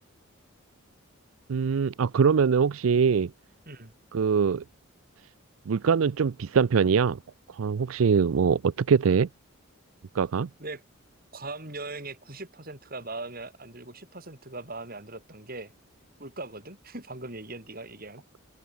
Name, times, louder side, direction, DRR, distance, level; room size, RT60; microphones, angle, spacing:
voice 1, 1.5-3.3 4.1-4.6 5.7-7.2 7.5-9.3 10.1-10.5, right 6 dB, 85° right, 0.5 m, -23 dB
voice 2, 11.3-15.7 16.2-18.2, right 2 dB, 45° right, 6.1 m, -40 dB
open air
head